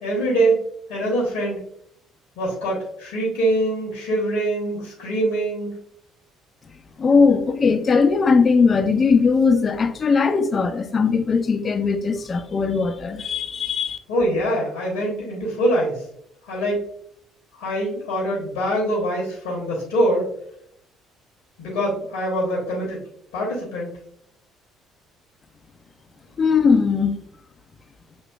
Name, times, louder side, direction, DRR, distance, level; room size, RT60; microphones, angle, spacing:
voice 1, 0.0-0.6 0.9-1.6 2.4-5.7 14.1-16.0 16.5-16.8 17.6-20.3 21.6-23.0 23.3-23.9, right 1 dB, 65° left, 1.1 m, -23 dB
voice 2, 7.0-14.0 26.4-27.1, left 5 dB, 35° left, 0.5 m, -19 dB
6.3 x 2.8 x 2.3 m
figure-of-eight pair, 50°, 0 cm